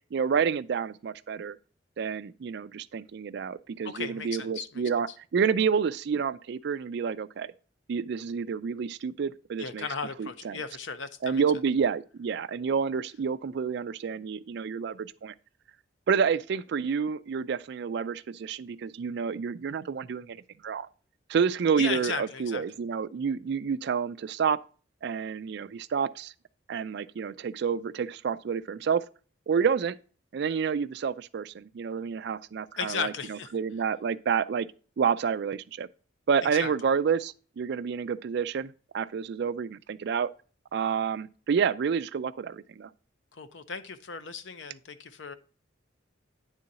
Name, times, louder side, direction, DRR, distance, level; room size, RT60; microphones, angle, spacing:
voice 1, 0.1-1.6 2.0-7.5 7.9-9.9 10.2-10.6 11.2-15.3 16.1-20.9 21.3-24.6 25.0-26.3 26.7-29.0 29.5-30.0 30.3-34.7 35.0-35.9 36.3-40.3 40.7-42.9, right 6 dB, 60° right, 0.3 m, -29 dB
voice 2, 3.8-4.8 9.6-11.4 21.8-22.6 32.8-33.5 36.5-36.7 43.3-45.3, left 5 dB, 75° left, 0.7 m, -36 dB
9.8 x 3.8 x 4.0 m
head